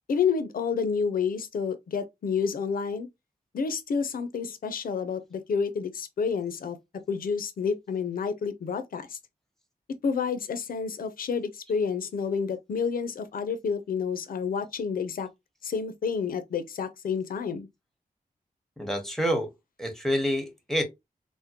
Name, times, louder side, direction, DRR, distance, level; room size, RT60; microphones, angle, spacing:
voice 1, 0.1-3.1 3.5-6.8 7.1-9.2 10.0-15.3 15.6-17.7, left 6 dB, 70° left, 0.5 m, -29 dB
voice 2, 18.8-19.5 19.8-20.8, equal, 5° left, 0.9 m, -27 dB
3.6 x 2.1 x 2.8 m
wide cardioid pair, 130°, 15 cm